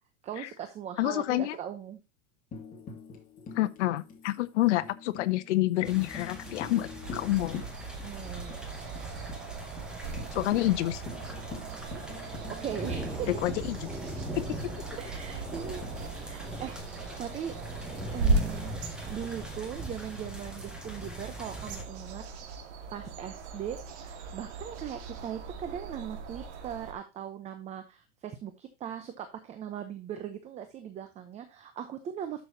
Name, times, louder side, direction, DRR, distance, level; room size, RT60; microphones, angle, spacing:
voice 1, 0.2-2.0 8.0-8.5 12.5-13.4 15.0-15.8 16.2-16.8 17.2-17.5 18.1-18.7 19.1-22.2 22.5-22.6 22.9-32.4, right 9 dB, 20° right, 0.7 m, -39 dB
voice 2, 1.0-1.6 3.5-7.6 10.3-11.0 13.4-13.9 14.3-14.4, left 16 dB, 70° left, 1.0 m, -28 dB
Tambourine, 2.5-8.2 8.5-8.6 8.9-9.4 9.8-9.9 10.2-14.3 15.8-16.8, left 4 dB, 20° left, 2.2 m, -45 dB
sound 1, 5.8-21.8, right 1 dB, ahead, 1.8 m, -41 dB
sound 2, 7.0-26.9, right 3 dB, 60° right, 2.7 m, -38 dB
12.0 x 6.3 x 2.8 m
supercardioid pair, 155°, 37 cm